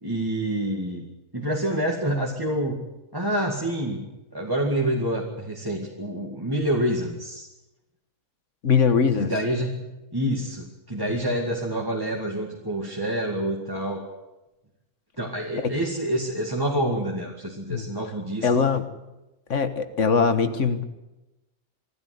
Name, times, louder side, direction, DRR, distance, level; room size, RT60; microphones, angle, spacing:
voice 1, 0.0-1.1 1.3-2.8 3.1-4.1 4.3-7.5 9.2-9.9 10.1-14.1 15.2-18.7, right 1 dB, 15° right, -1 dB, 2.1 m, -27 dB
voice 2, 8.6-9.3 15.6-15.7 17.7-17.9 18.4-18.9 19.5-20.8, left 5 dB, 60° left, 11 dB, 1.6 m, -21 dB
25.0 x 13.0 x 9.5 m, 1.0 s
omnidirectional pair, 1.4 m